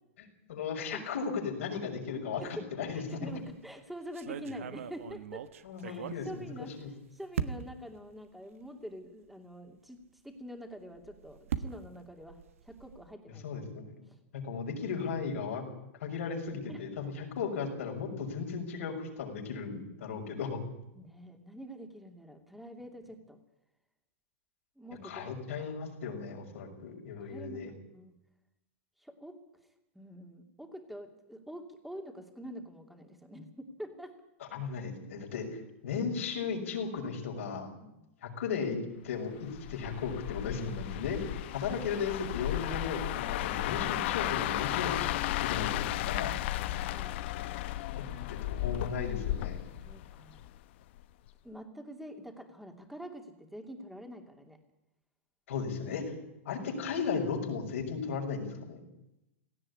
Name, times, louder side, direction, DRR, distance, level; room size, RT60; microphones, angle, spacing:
voice 1, 0.5-3.3 5.6-6.9 13.4-13.9 14.3-15.6 16.0-20.6 25.0-27.7 34.5-35.5 35.8-37.7 38.2-38.8 39.0-46.4 48.0-49.7 55.5-56.1 56.4-58.8, left 5 dB, 80° left, 2 dB, 6.2 m, -36 dB
voice 2, 2.9-5.4 5.8-6.7 7.1-10.0 10.2-12.4 12.6-13.5 16.7-16.9 20.9-23.4 24.8-25.4 27.2-28.1 29.0-29.4 29.9-34.1 37.8-38.1 46.6-47.2 49.8-50.4 51.4-54.6, equal, ahead, 4 dB, 2.7 m, -46 dB
sound 1, 3.3-3.6 4.1-6.9 7.3-7.9 8.6-8.7 9.1-9.2 10.8-13.1, right 8 dB, 90° right, 1.3 m, -40 dB
sound 2, 39.5-50.6 51.0-51.3, left 15 dB, 60° left, 0.9 m, -34 dB
17.5 x 15.5 x 9.8 m, 0.90 s
supercardioid pair, 145°, 7 cm